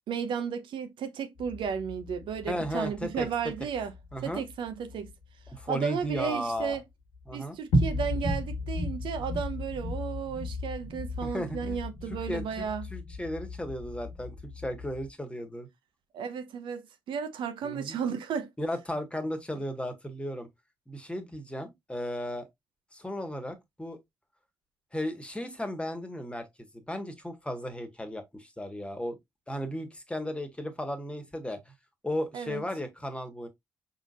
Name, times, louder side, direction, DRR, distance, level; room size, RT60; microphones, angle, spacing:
voice 1, 0.1-3.9 4.2-5.1 5.7-6.8 7.3-12.9 16.1-18.5 32.3-32.6, right 7 dB, 60° right, 0.8 m, -34 dB
sound 1, 1.4-6.8 7.1-7.3 7.7-15.1, left 1 dB, 70° left, 1.4 m, -35 dB
voice 2, 2.5-3.3 4.1-4.4 5.5-6.8 7.3-7.6 11.2-11.8 12.1-15.7 17.6-18.0 18.6-20.5 20.9-22.5 22.9-24.0 24.9-26.5 26.7-29.2 29.5-31.7 32.0-33.5, equal, 10° left, 1.5 m, -35 dB
5.2 x 3.9 x 2.5 m
hypercardioid pair, 45°, 9 cm